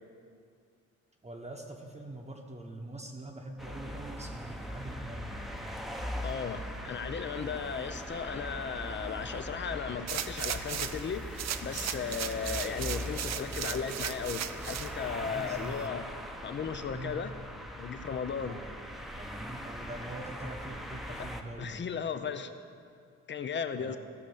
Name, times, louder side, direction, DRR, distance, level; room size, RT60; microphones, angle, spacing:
voice 1, 1.2-5.7 15.2-15.9 16.9-17.2 18.4-18.8 19.1-21.9 23.8-24.0, right 2 dB, 20° right, -1 dB, 1.1 m, -44 dB
sound 1, 3.6-21.4, equal, ahead, 0.9 m, -40 dB
voice 2, 6.2-16.1 16.4-17.4 17.8-18.6 21.1-21.3 21.6-22.5 23.3-24.0, left 6 dB, 40° left, 10 dB, 0.7 m, -36 dB
sound 2, 10.1-11.1 11.4-14.9 15.4-15.5, right 10 dB, 60° right, 0.6 m, -36 dB
15.0 x 5.4 x 7.2 m, 2.3 s
cardioid pair, 90°, 30 cm